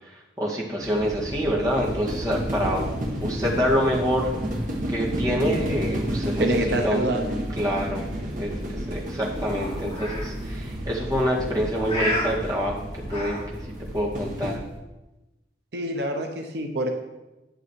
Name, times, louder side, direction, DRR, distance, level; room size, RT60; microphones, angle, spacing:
voice 1, 0.4-2.9 3.2-4.3 4.9-7.0 7.6-8.0 8.4-12.8 13.1-13.4 13.9-14.6, equal, 20° right, -4 dB, 2.1 m, -26 dB
sound 1, 0.8-14.6, equal, 45° right, 1.7 m, -31 dB
sound 2, 1.6-14.8, left 1 dB, 30° left, 3.8 m, -37 dB
voice 2, 6.4-7.3 15.7-16.9, right 1 dB, 70° right, 3 dB, 1.0 m, -26 dB
11.5 x 7.1 x 4.7 m, 1.0 s
head